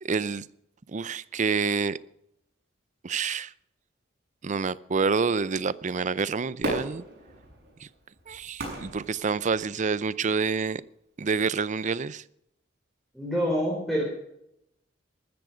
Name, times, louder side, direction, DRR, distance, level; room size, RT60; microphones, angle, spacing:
voice 1, 0.0-0.4 0.9-2.0 3.0-3.5 4.4-7.0 8.3-10.8 11.2-12.2, right 5 dB, 40° right, 19 dB, 0.5 m, -27 dB
Fireworks, 6.6-9.9 10.5-10.6, right 1 dB, 60° right, 6.6 m, -36 dB
voice 2, 13.1-14.0, equal, ahead, -4 dB, 4.1 m, -26 dB
14.0 x 14.0 x 5.0 m, 0.79 s
head